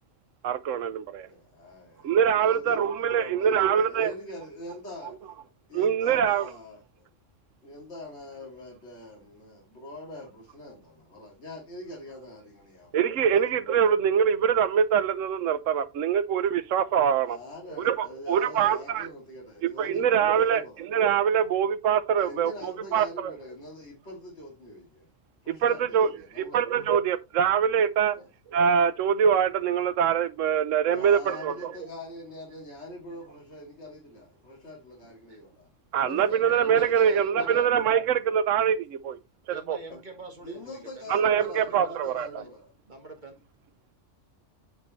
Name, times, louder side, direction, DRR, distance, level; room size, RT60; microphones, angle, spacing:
voice 1, 0.4-1.3 2.0-4.1 5.7-6.5 12.9-17.4 17.8-19.1 19.6-23.3 25.6-28.2 28.5-31.7 35.9-39.2 39.5-39.8 41.1-42.3, right 8 dB, 85° right, 1.1 m, -24 dB
voice 2, 1.2-5.2 5.7-7.1 7.6-13.0 13.3-13.5 17.3-20.8 22.2-25.1 25.4-26.6 28.1-28.3 30.9-35.7 36.0-37.7 39.9-40.0 40.4-42.7, left 1 dB, 60° left, 3.0 m, -43 dB
voice 3, 36.4-37.6 39.5-42.5 42.9-43.4, right 2 dB, 40° right, 1.9 m, -45 dB
9.1 x 5.4 x 3.1 m
omnidirectional pair, 1.3 m